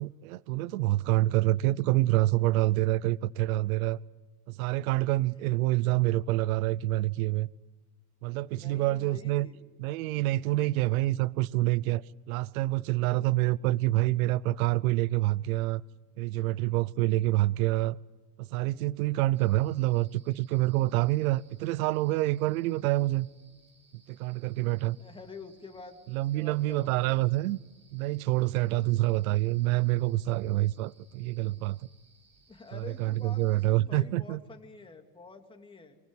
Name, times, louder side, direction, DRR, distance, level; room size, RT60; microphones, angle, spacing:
voice 1, 0.0-4.0 4.5-7.5 8.2-9.5 9.8-15.8 16.2-18.0 18.4-23.3 24.1-25.0 26.1-27.6 27.9-31.8 32.7-34.4, right 17 dB, 75° right, 0.8 m, -27 dB
voice 2, 8.5-9.6 10.4-10.7 25.0-27.2 28.8-28.9 32.5-36.0, left 4 dB, 10° left, 2.6 m, -48 dB
sound 1, 19.3-33.7, right 3 dB, 15° right, 4.0 m, -64 dB
24.0 x 22.5 x 8.3 m
supercardioid pair, 135°, 43 cm